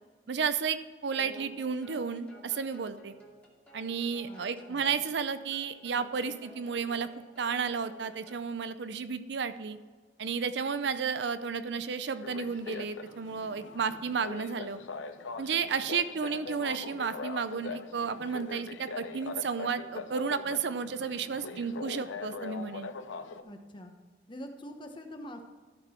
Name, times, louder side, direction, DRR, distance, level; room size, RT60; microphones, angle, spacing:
voice 1, 0.3-3.1 3.7-7.1 7.4-9.8 10.2-14.8 15.4-22.9, right 6 dB, 60° right, 12 dB, 0.5 m, -32 dB
sound 1, 1.1-8.5, right 1 dB, 10° left, 1.9 m, -54 dB
voice 2, 4.2-4.9 23.4-23.9 24.3-25.4, equal, 25° left, 5 dB, 1.0 m, -45 dB
sound 2, 12.2-23.4, left 4 dB, 85° left, 0.6 m, -42 dB
12.5 x 6.0 x 4.4 m, 1.5 s
head